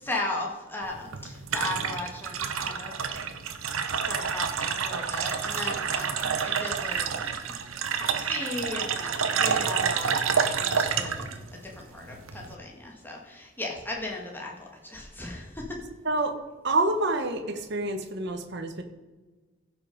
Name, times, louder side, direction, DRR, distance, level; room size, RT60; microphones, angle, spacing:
voice 1, 0.0-3.2 4.1-7.5 8.2-11.4 11.9-14.5 14.8-15.6, left 2 dB, 10° left, -2 dB, 1.9 m, -36 dB
sound 1, 0.8-12.5, right 6 dB, 90° right, 0.9 m, -29 dB
voice 2, 16.6-18.8, right 2 dB, 55° right, 7 dB, 1.2 m, -27 dB
15.5 x 5.8 x 5.2 m, 1.3 s
head